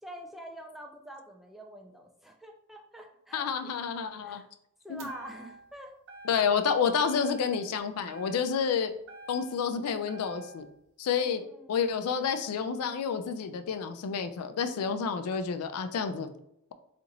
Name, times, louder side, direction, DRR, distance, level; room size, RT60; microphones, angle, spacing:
voice 1, 0.0-3.7 4.2-4.5 4.8-5.9 11.2-11.8, right 1 dB, ahead, 2 dB, 0.3 m, -46 dB
voice 2, 3.3-4.4 4.9-5.1 6.3-8.9 9.3-10.7 11.0-11.4 11.7-16.3, left 6 dB, 75° left, 8 dB, 0.4 m, -29 dB
sound 1, 5.0-5.7 6.1-6.7 7.1-7.8 8.1-9.7 10.1-10.7, right 2 dB, 60° right, 0.6 m, -48 dB
2.9 x 2.5 x 3.9 m, 0.77 s
head